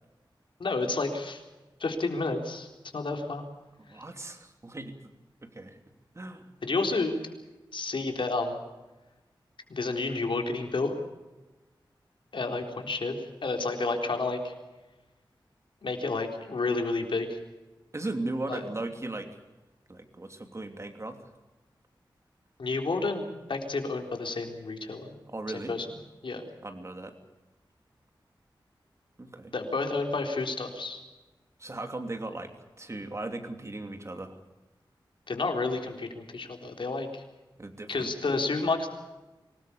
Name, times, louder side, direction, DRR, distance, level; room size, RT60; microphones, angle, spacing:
voice 1, 0.6-1.4 1.8-2.7 2.9-3.5 6.6-7.2 7.7-8.6 9.7-10.9 12.3-14.5 15.8-17.4 18.5-18.6 22.6-25.1 25.5-25.9 26.2-26.5 29.5-31.0 35.3-37.2 37.9-38.9, left 3 dB, 75° left, 3 dB, 3.8 m, -30 dB
voice 2, 3.8-5.0 5.4-5.8 6.1-6.5 17.9-19.3 19.9-21.2 25.3-25.7 26.6-27.1 29.2-29.5 31.6-32.5 32.8-34.3 37.6-38.1, right 2 dB, 35° right, 5 dB, 3.0 m, -37 dB
25.5 x 19.0 x 7.0 m, 1.1 s
wide cardioid pair, 85°, 9 cm